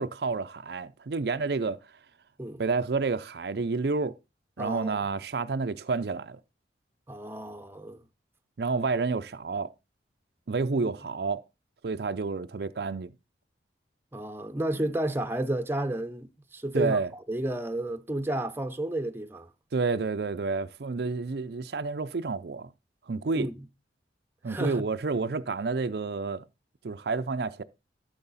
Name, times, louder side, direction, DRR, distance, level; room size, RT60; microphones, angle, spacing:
voice 1, 0.0-1.9 2.6-4.1 4.6-6.4 8.6-9.7 10.5-11.4 11.8-13.1 16.7-17.1 19.7-22.7 23.1-23.5 24.4-26.5 26.8-27.6, right 4 dB, 65° right, 0.5 m, -29 dB
voice 2, 4.6-5.0 7.1-8.0 10.8-10.9 14.1-17.0 17.3-19.5 23.3-23.5 24.5-24.8, right 1 dB, 10° right, 0.7 m, -31 dB
12.5 x 6.4 x 4.1 m
head